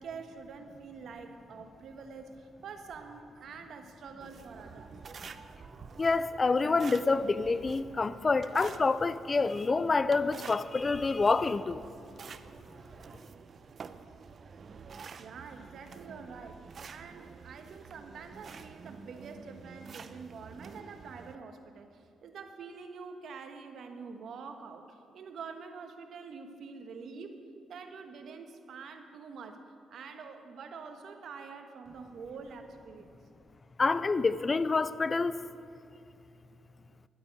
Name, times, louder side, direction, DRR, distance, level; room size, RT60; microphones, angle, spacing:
voice 1, 0.0-5.0 15.2-29.6 29.9-33.2, right 5 dB, 65° right, 1.4 m, -46 dB
sound 1, 4.2-21.4, right 5 dB, 50° right, 0.7 m, -49 dB
voice 2, 6.0-11.8 33.8-35.3, left 4 dB, 35° left, 0.5 m, -27 dB
12.0 x 8.8 x 9.5 m
cardioid pair, 75°, 0 cm